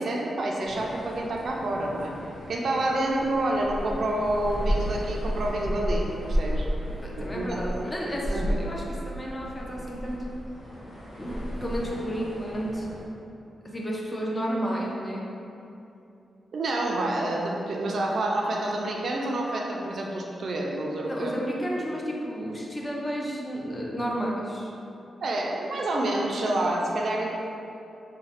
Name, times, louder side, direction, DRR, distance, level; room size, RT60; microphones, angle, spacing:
voice 1, 0.0-2.1 2.5-6.7 7.1-7.8 8.3-8.6 16.5-21.3 25.2-27.3, right 1 dB, 55° right, -1 dB, 0.3 m, -28 dB
sound 1, 0.6-13.1, equal, 75° left, 0.7 m, -33 dB
voice 2, 7.0-10.2 11.2-12.9 13.6-15.3 21.1-24.7, equal, 20° left, -3 dB, 0.4 m, -32 dB
3.0 x 2.1 x 2.8 m, 2.7 s
wide cardioid pair, 120°, 0 cm